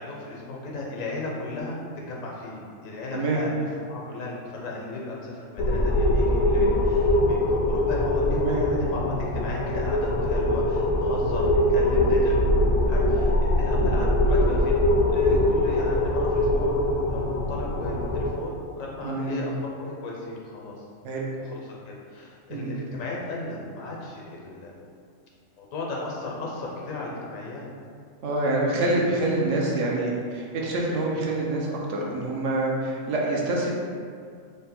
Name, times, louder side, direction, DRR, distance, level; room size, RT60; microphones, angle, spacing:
voice 1, 0.0-3.5 3.9-12.3 12.9-14.7 15.1-20.8 21.4-24.7 25.6-27.7, left 2 dB, 90° left, -2 dB, 1.1 m, -36 dB
voice 2, 3.1-3.4 8.3-8.7 19.0-19.5 21.0-21.3 22.5-22.7 28.2-33.7, right 2 dB, 70° right, -3 dB, 0.9 m, -26 dB
sound 1, 5.6-18.3, left 1 dB, 60° left, 0.6 m, -22 dB
3.5 x 2.2 x 4.1 m, 2.2 s
omnidirectional pair, 1.3 m